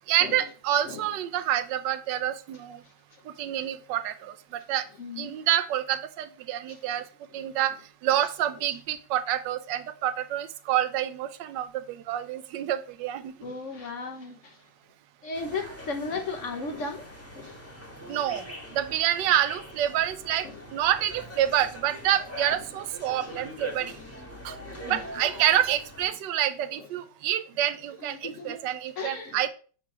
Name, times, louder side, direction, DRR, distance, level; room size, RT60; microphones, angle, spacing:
voice 1, 0.1-2.8 3.4-4.8 5.2-7.0 7.3-7.7 8.0-13.3 18.1-18.4 18.7-20.5 20.7-23.9 24.4-24.5 24.8-29.5, right 11 dB, 90° right, 11 dB, 1.3 m, -27 dB
voice 2, 5.0-5.4 6.7-7.0 13.4-14.6 15.2-17.0 17.3-17.6 18.0-18.2 20.4-20.6 23.2-23.4 23.9-24.1 24.6-25.0 25.3-25.4 26.8-26.9 28.0-29.4, left 3 dB, 50° left, 4 dB, 1.1 m, -36 dB
sound 1, 15.3-26.1, left 1 dB, 10° left, 1.3 m, -43 dB
7.0 x 2.9 x 4.7 m, 0.39 s
omnidirectional pair, 1.9 m